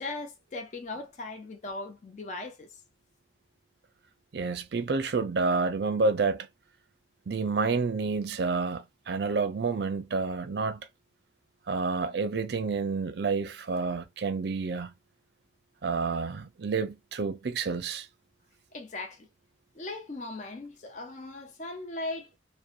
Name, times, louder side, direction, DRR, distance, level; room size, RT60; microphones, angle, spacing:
voice 1, 0.0-2.7 18.7-19.3 19.8-22.3, left 2 dB, 40° left, 0.4 m, -38 dB
voice 2, 4.3-6.5 7.3-10.9 11.7-14.9 15.8-18.1, right 4 dB, 60° right, 0.4 m, -29 dB
2.6 x 2.1 x 2.4 m
head